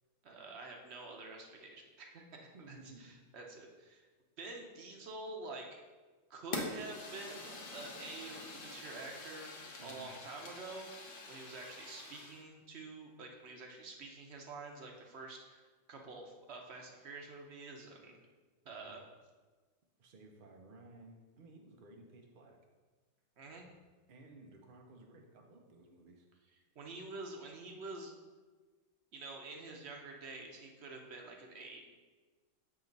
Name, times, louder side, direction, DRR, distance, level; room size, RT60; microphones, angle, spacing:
voice 1, 0.2-4.1 4.4-5.8 6.3-9.5 9.8-10.9 11.3-18.2 18.7-19.0 23.4-23.7 26.8-28.1 29.1-31.9, right 3 dB, 55° right, 1 dB, 0.8 m, -48 dB
voice 2, 2.5-3.2 9.8-10.1 18.6-19.0 20.0-22.6 24.1-26.3, right 2 dB, 75° right, 1 dB, 0.4 m, -56 dB
Fire, 6.5-12.4, left 3 dB, 45° left, 0.7 m, -46 dB
7.5 x 3.1 x 5.2 m, 1.3 s
omnidirectional pair, 1.9 m